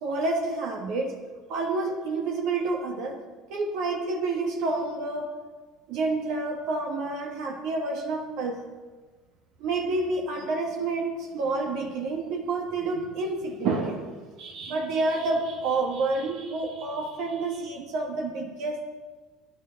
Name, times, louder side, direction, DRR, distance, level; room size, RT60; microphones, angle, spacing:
voice 1, 0.0-1.1 1.5-3.2 3.5-5.3 5.9-8.6 9.6-18.8, right 3 dB, 65° right, 2 dB, 1.6 m, -29 dB
20.0 x 9.9 x 3.9 m, 1.3 s
hypercardioid pair, 75°, 0 cm